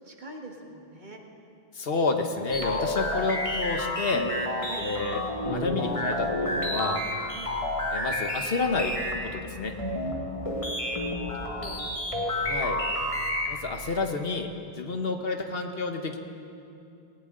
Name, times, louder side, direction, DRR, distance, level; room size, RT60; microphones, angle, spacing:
voice 1, 0.0-1.2 3.1-3.3 4.6-4.8 7.3-7.5 10.4-11.8, right 2 dB, 45° right, 1 dB, 1.7 m, -44 dB
voice 2, 1.7-4.3 4.8-7.0 7.9-8.9 9.3-9.7 12.4-12.8 13.5-14.5 14.8-16.2, left 3 dB, 65° left, 5 dB, 1.3 m, -29 dB
sound 1, 2.5-13.7, left 1 dB, 30° left, 2.0 m, -30 dB
19.5 x 18.5 x 3.8 m, 2.7 s
omnidirectional pair, 1.1 m